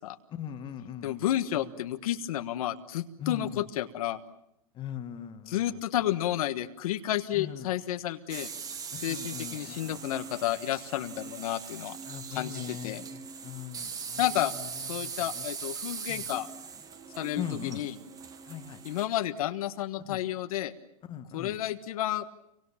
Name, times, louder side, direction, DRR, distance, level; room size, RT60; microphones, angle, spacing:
voice 1, 0.3-1.3 1.5-1.7 3.2-3.7 4.7-5.8 7.3-7.7 8.9-10.0 12.1-14.2 14.6-15.5 16.1-16.2 17.4-17.8 18.5-18.8 20.1-20.2 21.1-21.6, left 9 dB, 25° left, 8 dB, 1.8 m, -40 dB
voice 2, 1.0-4.2 5.5-8.5 9.0-12.0 12.3-13.0 14.2-14.5 14.8-16.5 17.2-17.9 18.8-20.7 21.3-22.2, left 13 dB, 65° left, 8 dB, 1.5 m, -31 dB
sound 1, 8.3-19.0, right 6 dB, 20° right, 1.6 m, -41 dB
28.0 x 24.5 x 7.3 m, 0.79 s
hypercardioid pair, 145°, 20 cm